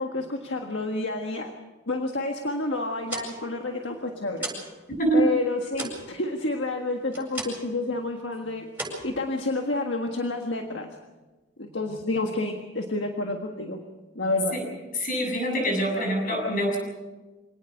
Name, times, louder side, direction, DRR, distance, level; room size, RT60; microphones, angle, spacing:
voice 1, 0.0-1.5 1.9-4.5 5.1-8.7 9.0-10.9 11.6-13.8 14.2-14.6, left 2 dB, 65° left, 3 dB, 1.6 m, -29 dB
sound 1, 2.9-4.8 5.1-7.8 8.1-8.4 8.7-9.8, right 2 dB, 10° right, 7.8 m, -37 dB
voice 2, 15.0-16.8, right 1 dB, 45° left, 2 dB, 7.4 m, -24 dB
25.5 x 18.5 x 6.7 m, 1.2 s
head